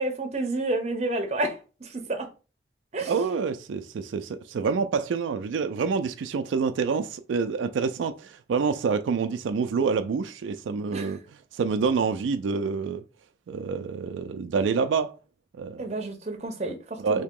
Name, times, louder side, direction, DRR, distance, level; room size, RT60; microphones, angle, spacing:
voice 1, 0.0-2.3 2.9-3.2 10.9-11.2 15.8-17.2, right 2 dB, 35° right, 0.7 m, -30 dB
voice 2, 3.1-13.0 13.5-15.2 15.6-16.0 17.0-17.2, right 5 dB, 90° right, 0.3 m, -27 dB
2.8 x 2.8 x 3.6 m
head